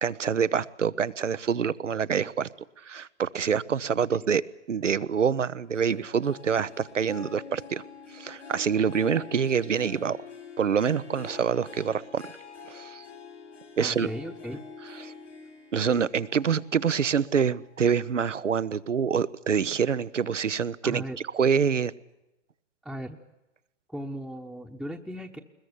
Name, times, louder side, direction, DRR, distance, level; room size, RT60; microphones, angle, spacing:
voice 1, 0.0-2.5 2.8-4.4 4.7-7.8 8.1-10.2 10.6-12.3 12.7-13.0 13.8-14.1 15.0-15.1 15.7-21.0 21.3-21.9, right 7 dB, 90° right, 16 dB, 0.8 m, -26 dB
Harp, 5.7-18.5 18.9-19.3 19.8-19.9, left 5 dB, 75° left, 7.7 m, -46 dB
voice 2, 13.8-14.6 20.8-21.2 22.8-23.2 23.9-25.4, equal, ahead, 0 dB, 1.0 m, -37 dB
21.0 x 21.0 x 8.2 m, 0.93 s
figure-of-eight pair, 115°, 36 cm